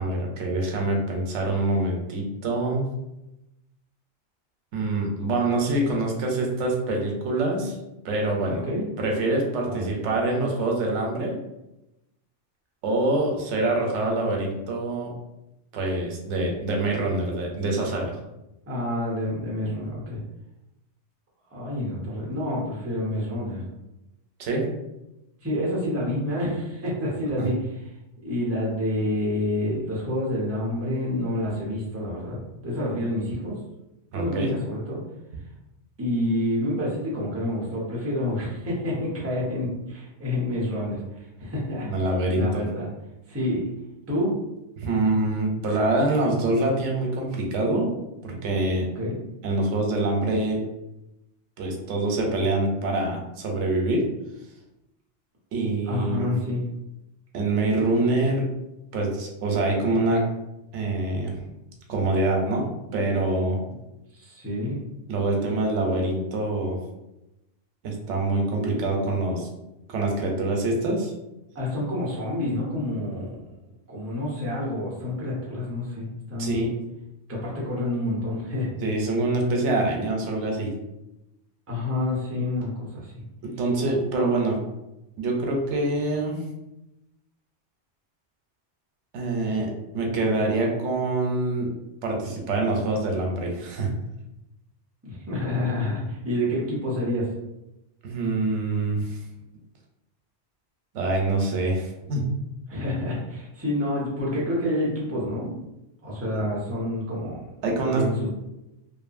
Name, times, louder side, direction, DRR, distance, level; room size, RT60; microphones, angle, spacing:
voice 1, 0.0-2.9 4.7-7.8 8.0-8.7 9.0-11.4 12.8-15.1 15.7-18.1 24.4-24.6 27.4-27.5 34.1-34.5 41.8-42.7 44.8-47.9 48.2-48.9 49.4-50.6 51.6-54.0 55.5-56.3 57.3-58.5 58.9-60.2 60.7-61.3 61.9-63.6 65.1-66.8 67.8-69.5 69.9-71.1 76.4-76.7 78.8-80.7 83.4-84.6 85.2-86.4 89.1-91.7 92.0-93.9 98.0-99.2 100.9-102.2 107.6-108.1, right 2 dB, 90° right, 0 dB, 0.9 m, -25 dB
voice 2, 18.7-20.2 21.5-23.6 25.4-27.9 28.2-33.6 34.1-35.0 36.0-41.9 42.3-42.9 43.3-43.7 44.1-44.4 49.0-49.2 55.8-56.6 64.1-64.8 71.5-73.4 73.9-76.7 77.3-78.8 81.7-83.1 95.0-97.3 102.7-105.5 106.0-107.4 107.9-108.3, left 1 dB, 15° right, -5 dB, 0.5 m, -28 dB
2.5 x 2.5 x 2.4 m, 0.93 s
omnidirectional pair, 1.2 m